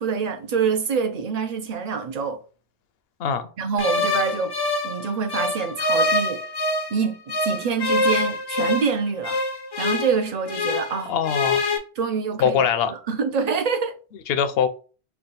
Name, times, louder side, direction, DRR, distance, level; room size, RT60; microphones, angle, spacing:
voice 1, 0.0-2.4 3.6-4.5 4.8-6.4 6.9-9.4 9.8-11.1 12.0-13.9, right 5 dB, 50° right, 0.5 m, -26 dB
sound 1, 3.8-7.0 7.3-11.0 11.2-11.8, left 2 dB, 40° left, 0.4 m, -25 dB
voice 2, 11.1-11.7 12.4-12.9 14.3-14.7, left 7 dB, 70° left, 0.7 m, -22 dB
3.4 x 2.3 x 4.0 m
omnidirectional pair, 1.1 m